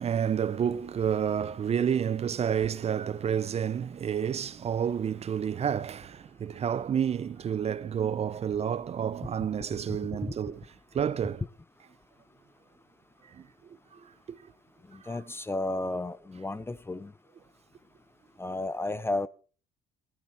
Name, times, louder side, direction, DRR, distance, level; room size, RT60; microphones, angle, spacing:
voice 1, 0.0-10.7 10.9-11.4 13.2-13.5 13.9-14.1 14.4-14.5 15.0-15.2, right 8 dB, 40° right, 0.7 m, -30 dB
voice 2, 9.9-10.4 14.9-17.1 18.4-19.3, left 2 dB, 15° left, 0.7 m, -33 dB
16.5 x 12.5 x 4.4 m
cardioid pair, 110°, 17 cm